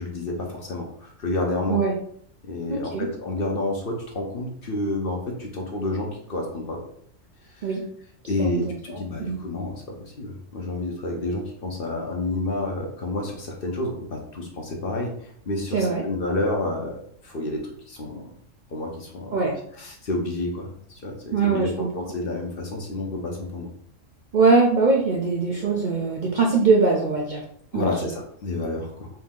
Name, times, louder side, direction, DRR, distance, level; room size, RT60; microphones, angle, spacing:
voice 1, 0.0-1.8 2.5-6.8 7.5-7.7 8.3-17.0 17.2-18.3 18.7-19.4 19.7-23.7 27.7-29.1, left 2 dB, 50° left, 1 dB, 0.9 m, -29 dB
voice 2, 2.7-3.1 7.6-7.8 8.4-8.6 9.2-9.4 15.7-16.0 19.3-19.5 21.3-21.9 24.3-27.4 27.7-27.9, right 4 dB, 50° right, -1 dB, 0.6 m, -21 dB
4.3 x 2.7 x 3.7 m, 0.65 s
omnidirectional pair, 1.3 m